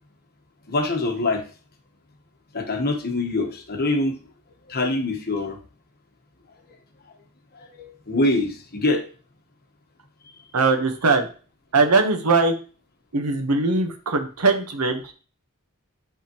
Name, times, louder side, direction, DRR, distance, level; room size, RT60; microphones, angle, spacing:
voice 1, 0.7-1.4 2.5-4.1 4.7-5.6 7.6-9.0, left 2 dB, 45° left, 4 dB, 1.1 m, -24 dB
voice 2, 10.5-11.3 11.7-12.5 13.1-15.1, right 3 dB, 90° right, 5 dB, 1.1 m, -20 dB
10.5 x 3.6 x 3.0 m, 0.38 s
head